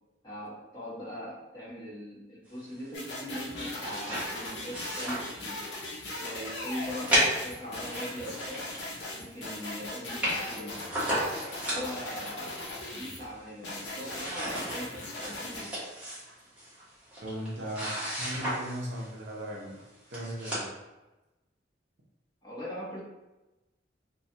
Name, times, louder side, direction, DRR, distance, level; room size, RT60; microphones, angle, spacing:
voice 1, 0.2-5.6 6.2-8.7 9.1-10.8 11.6-15.7 22.4-23.0, equal, 25° left, -9 dB, 1.1 m, -41 dB
sound 1, 2.9-13.2 13.6-15.6, left 2 dB, 75° left, 0.7 m, -39 dB
sound 2, 3.5-5.8 6.2-6.3 7.1-9.1 9.5-9.6 9.8-9.9 10.0-12.3 12.8-13.5 13.7-19.1 19.8-19.9 20.1-20.7, equal, 10° right, 1.0 m, -34 dB
voice 2, 17.2-19.8 20.1-20.7, right 1 dB, 70° right, -2 dB, 0.6 m, -37 dB
3.2 x 2.3 x 2.7 m, 1.0 s
head